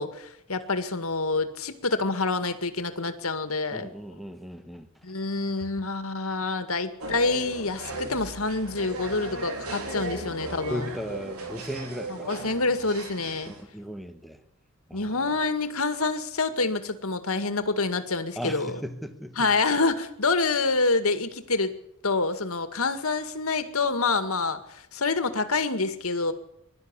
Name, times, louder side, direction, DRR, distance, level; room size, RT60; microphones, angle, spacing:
voice 1, 0.0-3.9 5.0-10.9 12.2-13.5 14.9-18.7 19.4-21.8 22.0-26.3, left 3 dB, 75° left, 2.1 m, -27 dB
voice 2, 3.7-4.9 10.7-12.3 13.5-14.4 14.9-15.4 18.4-19.5, equal, ahead, 1.3 m, -37 dB
sound 1, 7.0-13.6, right 2 dB, 85° right, 4.1 m, -37 dB
22.0 x 12.5 x 9.8 m
head